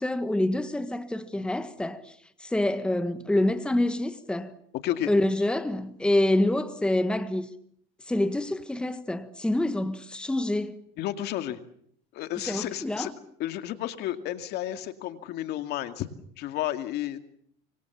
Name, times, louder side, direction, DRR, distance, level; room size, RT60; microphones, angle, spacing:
voice 1, 0.0-2.1 2.4-4.5 5.1-7.5 8.1-10.8 12.5-13.1, left 1 dB, 5° left, 1.5 m, -26 dB
voice 2, 11.0-11.6 12.1-13.1 13.4-16.1 16.4-17.2, left 13 dB, 60° left, 2.3 m, -32 dB
26.0 x 24.5 x 7.1 m
cardioid pair, 125°, 19 cm